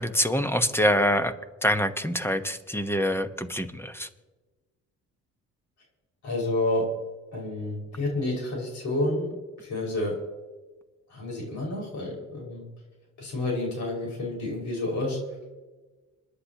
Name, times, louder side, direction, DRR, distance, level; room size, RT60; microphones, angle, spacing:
voice 1, 0.0-1.3 1.6-4.1, equal, 10° left, 9 dB, 1.2 m, -25 dB
voice 2, 6.2-6.9 7.3-9.3 9.6-10.2 11.1-12.7 13.2-15.2, left 2 dB, 70° left, -3 dB, 5.7 m, -29 dB
27.0 x 10.0 x 3.0 m, 1.2 s
supercardioid pair, 65°, 30 cm